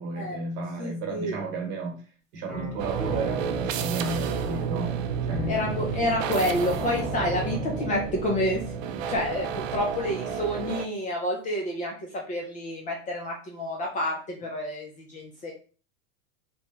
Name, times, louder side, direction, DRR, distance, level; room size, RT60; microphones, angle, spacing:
voice 1, 0.0-2.0 2.3-5.0 5.3-5.6, right 2 dB, 50° right, 2 dB, 1.3 m, -33 dB
voice 2, 0.8-1.3 5.5-15.5, left 1 dB, 20° left, -1 dB, 0.4 m, -29 dB
sound 1, 2.5-9.9, left 2 dB, ahead, 1.0 m, -39 dB
sound 2, 2.8-10.9, right 7 dB, 65° right, 0.5 m, -31 dB
2.9 x 2.1 x 2.9 m, 0.38 s
hypercardioid pair, 125°, 41 cm